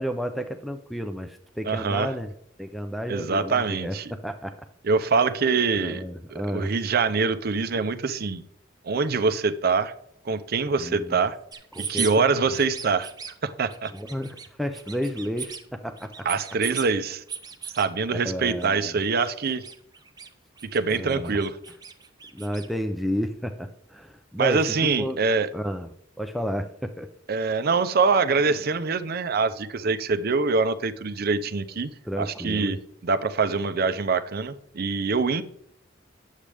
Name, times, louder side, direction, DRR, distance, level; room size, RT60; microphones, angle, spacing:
voice 1, 0.0-2.3 2.6-4.6 5.7-6.7 10.8-11.3 11.7-12.6 13.9-16.3 18.1-19.0 20.9-21.4 22.3-25.2 25.5-25.9 26.2-27.1 32.0-32.8, equal, ahead, 7 dB, 0.4 m, -32 dB
voice 2, 1.7-2.1 3.1-4.1 4.8-6.0 6.3-8.4 8.8-9.9 10.3-11.4 11.9-13.1 13.4-13.9 16.2-17.2 17.8-19.6 20.7-21.6 24.4-25.5 27.3-32.8 33.0-35.4, right 4 dB, 55° right, 11 dB, 0.5 m, -24 dB
sound 1, 11.5-12.1 12.5-13.3 13.7-14.5 14.7-15.6 16.0-16.9 17.3-17.9 18.4-18.7 19.0-20.3 20.6-22.7, right 6 dB, 20° right, 0.8 m, -37 dB
9.9 x 7.3 x 3.4 m, 0.72 s
head